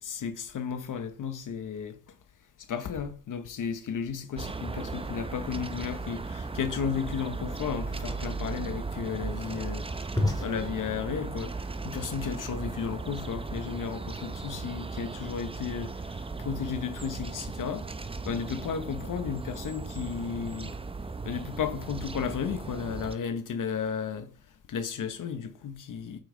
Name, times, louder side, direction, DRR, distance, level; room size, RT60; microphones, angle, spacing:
voice 1, 0.1-2.0 2.7-9.8 10.4-11.5 11.8-17.8 18.3-20.7 21.3-24.3 24.7-26.2, left 7 dB, 75° left, 0.9 m, -34 dB
sound 1, 4.4-23.2, right 3 dB, 20° right, 0.6 m, -37 dB
sound 2, 7.9-13.0, left 2 dB, 10° left, 2.1 m, -36 dB
7.6 x 5.3 x 4.8 m
wide cardioid pair, 110°, 31 cm